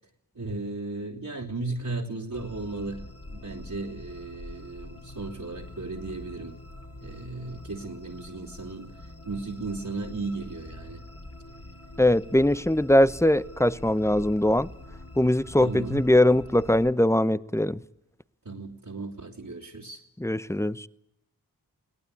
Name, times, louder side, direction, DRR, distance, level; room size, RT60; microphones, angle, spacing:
voice 1, 0.3-6.6 7.0-11.0 15.6-16.1 18.4-20.0, right 3 dB, 60° right, 3.2 m, -35 dB
sound 1, 2.3-16.9, left 1 dB, 40° left, 3.7 m, -44 dB
voice 2, 12.0-14.7 15.2-17.8 20.2-20.9, left 1 dB, 5° left, 0.9 m, -21 dB
22.0 x 18.0 x 8.4 m
cardioid pair, 40°, 38 cm